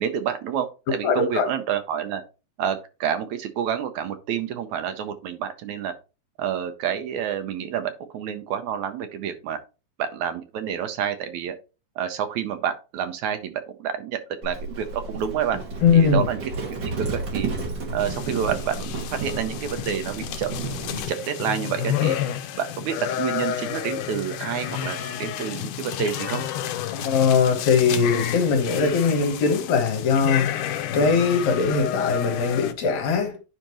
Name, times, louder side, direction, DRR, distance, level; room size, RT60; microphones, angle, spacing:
voice 1, 0.0-2.2 2.6-5.9 6.4-9.6 10.0-11.6 12.0-15.6 15.9-16.4 16.7-16.8 17.1-17.5 17.9-20.5 20.9-22.2 22.6-26.4, right 9 dB, 75° right, 2.1 m, -28 dB
voice 2, 1.0-1.5 15.8-16.3 26.9-33.4, left 5 dB, 70° left, 2.6 m, -21 dB
Livestock farm animals working animals, 14.4-21.1, right 3 dB, 40° right, 2.5 m, -32 dB
sound 1, 18.0-32.7, left 10 dB, 90° left, 2.2 m, -30 dB
9.9 x 5.1 x 3.0 m
omnidirectional pair, 3.6 m